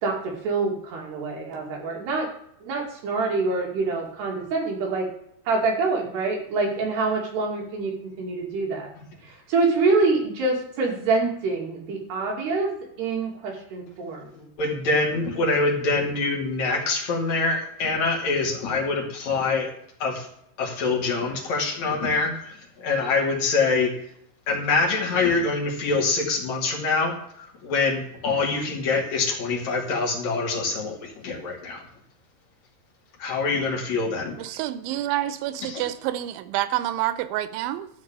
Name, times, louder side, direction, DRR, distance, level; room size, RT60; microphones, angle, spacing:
voice 1, 0.4-2.3 2.6-5.1 5.5-8.9 9.2-12.7 13.0-14.3, right 3 dB, 65° right, -1 dB, 4.4 m, -25 dB
voice 2, 14.3-19.7 20.0-20.3 20.6-23.9 24.5-31.8 33.2-34.4 35.6-35.8, left 3 dB, 45° left, -1 dB, 3.2 m, -25 dB
voice 3, 34.4-37.9, right 13 dB, 90° right, 13 dB, 3.1 m, -28 dB
13.0 x 4.7 x 8.7 m, 0.71 s
omnidirectional pair, 5.3 m